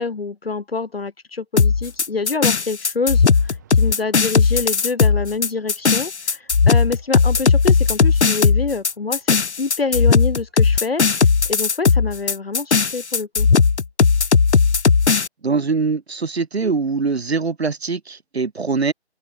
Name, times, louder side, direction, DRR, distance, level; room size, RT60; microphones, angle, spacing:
voice 1, 0.0-9.3 9.6-13.5, left 4 dB, 60° left, 2.9 m, -26 dB
sound 1, 1.6-15.3, left 5 dB, 85° left, 1.3 m, -16 dB
sound 2, 1.7-10.8, right 11 dB, 15° right, 7.1 m, -58 dB
voice 2, 15.4-18.9, right 4 dB, 70° right, 2.3 m, -22 dB
open air
hypercardioid pair, 175°, 33 cm